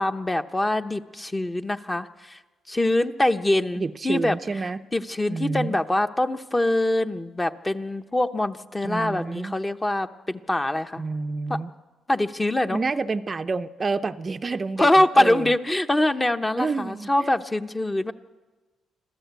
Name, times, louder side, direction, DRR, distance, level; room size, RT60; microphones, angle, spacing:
voice 1, 0.0-2.4 2.7-4.4 4.9-11.0 11.5-11.6 12.1-12.8 14.8-18.1, left 1 dB, 15° left, 7 dB, 1.0 m, -24 dB
voice 2, 3.8-4.8 5.3-5.8 8.8-9.6 11.0-11.7 12.7-15.5 16.6-17.3, right 4 dB, 35° right, 9 dB, 0.6 m, -29 dB
26.5 x 14.5 x 8.2 m, 1.3 s
cardioid pair, 90°, 0 cm